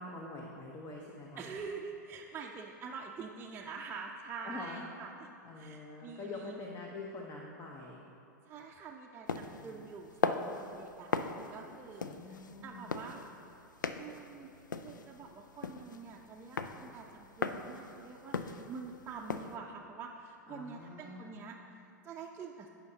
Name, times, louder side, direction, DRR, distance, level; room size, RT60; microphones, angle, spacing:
voice 1, 0.0-1.5 4.4-4.8 5.4-8.0 9.6-9.8 12.0-13.0 20.5-21.4, left 2 dB, 30° left, -1 dB, 1.0 m, -45 dB
voice 2, 1.4-5.3 5.6-6.7 8.5-13.3 14.0-14.5 14.8-22.7, right 5 dB, 20° right, -2 dB, 0.5 m, -46 dB
sound 1, 9.3-19.5, left 5 dB, 90° left, 0.4 m, -39 dB
15.5 x 5.7 x 2.8 m, 2.6 s
hypercardioid pair, 100°, 10 cm